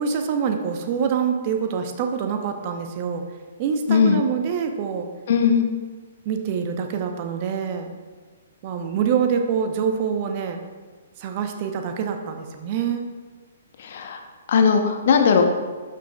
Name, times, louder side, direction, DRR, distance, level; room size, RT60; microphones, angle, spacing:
voice 1, 0.0-3.2 3.6-5.1 6.2-7.9 8.6-10.6 11.2-13.0, right 6 dB, 35° right, 6 dB, 0.8 m, -25 dB
voice 2, 3.9-4.2 5.3-5.7 13.8-14.2 14.5-15.4, left 6 dB, 50° left, 5 dB, 0.9 m, -18 dB
12.0 x 5.9 x 2.3 m, 1.4 s
figure-of-eight pair, 120°, 0 cm